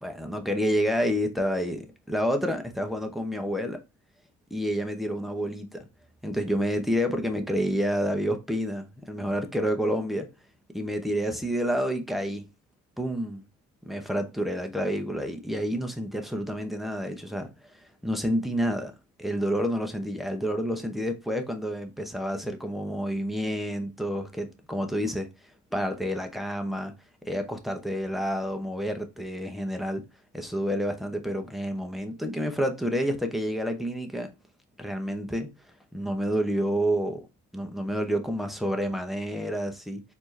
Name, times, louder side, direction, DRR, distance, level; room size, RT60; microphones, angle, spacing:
voice 1, 0.0-3.8 4.5-5.9 6.2-10.3 10.7-12.5 13.0-13.4 13.8-18.9 19.2-25.3 25.7-26.9 27.2-30.0 30.3-34.3 34.8-35.5 35.9-37.2 37.5-40.0, equal, ahead, 0.8 m, -29 dB
4.3 x 2.8 x 3.2 m
cardioid pair, 90°, 30 cm